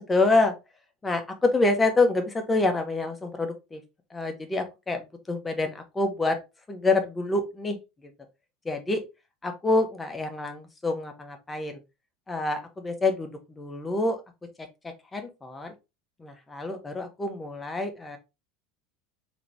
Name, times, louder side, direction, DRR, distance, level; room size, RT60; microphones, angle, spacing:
voice 1, 0.1-0.6 1.0-3.8 4.1-6.4 6.7-8.1 8.6-9.0 9.4-11.8 12.3-14.2 15.1-15.7 16.2-18.2, left 2 dB, 15° left, 5 dB, 1.1 m, -27 dB
3.7 x 3.0 x 3.4 m, 0.26 s
hypercardioid pair, 80°, 0 cm